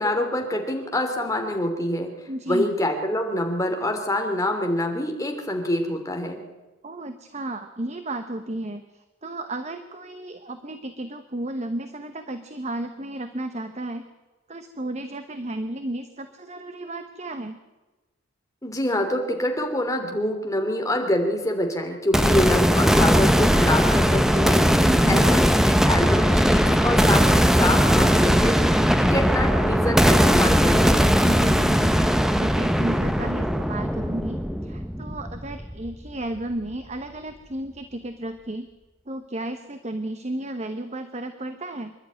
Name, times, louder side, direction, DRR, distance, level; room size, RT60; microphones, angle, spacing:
voice 1, 0.0-2.1 2.5-6.4 18.6-24.6 25.1-25.5 25.9-30.9, left 1 dB, 15° left, 3 dB, 2.9 m, -26 dB
voice 2, 2.3-2.7 6.8-14.0 14.5-17.6 24.8-25.4 31.2-38.7 39.1-41.9, right 1 dB, 35° right, 8 dB, 1.0 m, -33 dB
sound 1, 22.1-36.1, equal, ahead, 0.8 m, -19 dB
26.0 x 11.5 x 9.4 m, 1.2 s
head